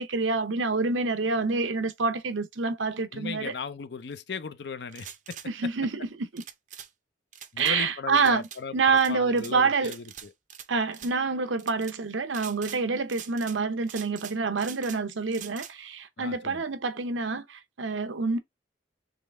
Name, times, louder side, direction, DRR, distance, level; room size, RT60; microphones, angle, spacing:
voice 1, 0.0-3.5 5.5-6.4 7.6-8.4 8.7-9.9 10.7-18.4, right 4 dB, 90° right, 0.8 m, -27 dB
voice 2, 3.1-5.4 7.5-10.3 16.2-16.6, left 5 dB, 60° left, 0.5 m, -37 dB
sound 1, 4.9-5.5 6.4-6.9 7.3-7.7 8.2-8.6 9.0-9.5 9.8-10.7 10.9-11.1 11.6-11.9 12.3-12.8 13.1-13.6 13.9-15.0 15.3-15.7, right 9 dB, 40° right, 0.5 m, -43 dB
3.8 x 3.2 x 3.4 m
head